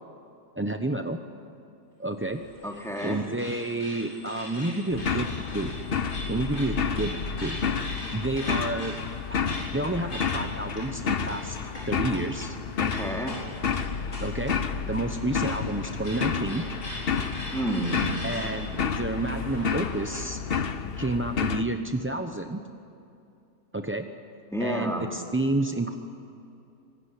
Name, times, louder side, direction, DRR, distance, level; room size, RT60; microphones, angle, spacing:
voice 1, 0.6-1.2 2.0-2.4 3.0-5.8 6.3-7.6 8.1-9.0 9.7-11.6 11.9-12.6 14.2-14.6 14.9-16.7 18.2-20.4 21.0-22.6 23.7-24.1 24.6-26.0, right 2 dB, 15° right, 6 dB, 0.5 m, -30 dB
sound 1, 2.2-20.4, left 1 dB, 60° left, 8.7 m, -42 dB
voice 2, 2.6-3.2 12.8-13.4 17.5-18.1 24.5-25.1, equal, ahead, 0 dB, 3.1 m, -30 dB
sound 2, 4.9-21.6, left 6 dB, 45° left, 1.0 m, -30 dB
25.0 x 21.5 x 10.0 m, 2.6 s
omnidirectional pair, 1.7 m